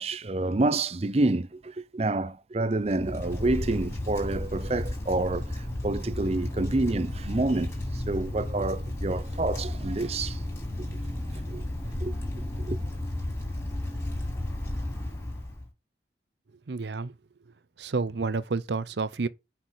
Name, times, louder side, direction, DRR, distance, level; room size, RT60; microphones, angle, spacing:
voice 1, 0.0-10.4 10.8-10.9 11.5-11.6 12.0-12.1 12.6-12.8, right 2 dB, 35° right, 0.6 m, -28 dB
Wind, 2.8-15.7, left 1 dB, 15° left, 3.8 m, -33 dB
voice 2, 16.7-17.1 17.8-19.3, right 4 dB, 75° right, 0.6 m, -29 dB
6.3 x 5.7 x 6.5 m
head